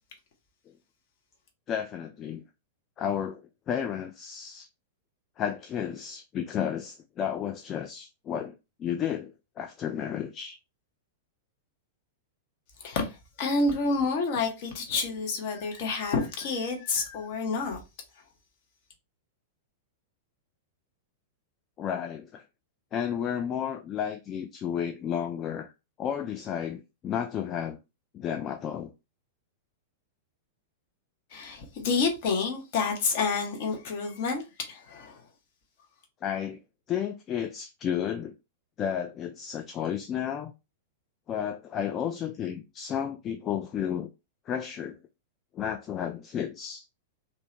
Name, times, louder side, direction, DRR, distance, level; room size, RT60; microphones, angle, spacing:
voice 1, 1.7-2.4 3.0-4.7 5.4-10.6 21.8-22.4 22.9-25.7 26.0-27.8 28.1-28.9 36.2-36.6 36.9-38.3 38.8-40.5 41.3-44.1 44.5-45.0 45.5-46.8, left 9 dB, 30° left, 0.3 m, -32 dB
voice 2, 12.8-17.8 31.3-35.2, left 4 dB, 45° left, 1.0 m, -29 dB
3.1 x 2.6 x 2.9 m
figure-of-eight pair, 95°, 0 cm